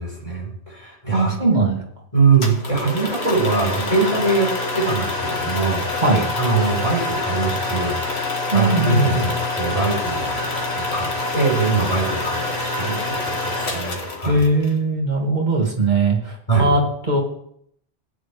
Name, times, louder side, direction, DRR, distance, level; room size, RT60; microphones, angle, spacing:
voice 1, 0.0-1.6 2.1-5.9 6.4-8.0 8.5-11.1 11.3-14.4 16.5-16.7, right 4 dB, 35° left, -3 dB, 4.8 m, -22 dB
voice 2, 1.1-1.8 6.0-6.3 8.5-9.3 14.2-17.2, right 2 dB, 45° right, -1 dB, 2.5 m, -20 dB
sound 1, 2.4-14.7, left 2 dB, 85° left, 2.0 m, -26 dB
16.0 x 10.0 x 3.4 m, 0.71 s
omnidirectional pair, 1.1 m